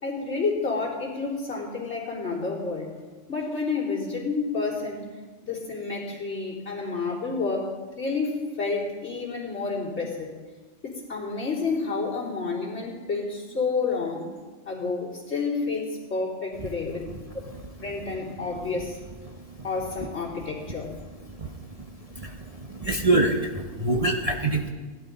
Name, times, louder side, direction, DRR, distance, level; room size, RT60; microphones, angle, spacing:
voice 1, 0.0-2.9 3.3-5.1 5.4-10.3 10.8-14.3 14.7-17.1 17.8-19.0 19.6-20.9, left 4 dB, 55° left, -5 dB, 3.7 m, -29 dB
voice 2, 19.3-19.7 21.4-21.7 22.1-24.7, right 2 dB, 30° right, 0 dB, 1.0 m, -26 dB
18.5 x 12.5 x 4.0 m, 1.4 s
omnidirectional pair, 1.3 m